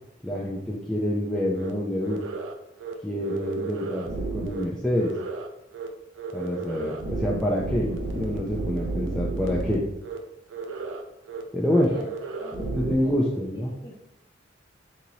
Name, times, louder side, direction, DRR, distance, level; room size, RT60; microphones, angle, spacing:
voice 1, 0.2-2.2 3.0-5.1 6.3-9.9 11.5-11.9 12.5-13.7, left 1 dB, 5° left, -5 dB, 0.4 m, -27 dB
sound 1, 1.6-1.7 2.0-2.5 2.8-2.9 3.2-4.6 5.0-5.5 5.7-5.9 6.2-9.8 10.0-10.2 10.5-11.0 11.3-11.4 11.7-12.9, right 3 dB, 90° right, 0.5 m, -33 dB
voice 2, 12.4-14.0, left 1 dB, 25° left, -2 dB, 0.8 m, -44 dB
4.0 x 3.0 x 2.7 m, 0.82 s
head